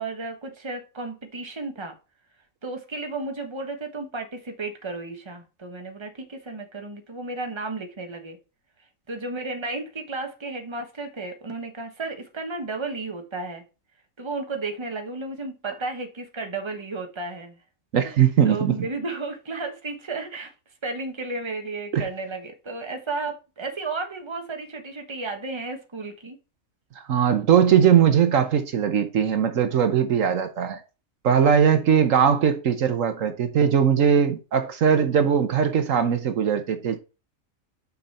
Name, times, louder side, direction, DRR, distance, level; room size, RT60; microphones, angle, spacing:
voice 1, 0.0-1.9 2.6-8.4 9.1-13.6 14.2-17.6 18.4-20.5 20.8-26.4, right 3 dB, 20° right, 1.3 m, -33 dB
voice 2, 17.9-18.9 21.9-22.0 27.0-30.8 31.2-37.0, right 8 dB, 70° right, 1.2 m, -20 dB
6.6 x 5.2 x 4.2 m
omnidirectional pair, 1.4 m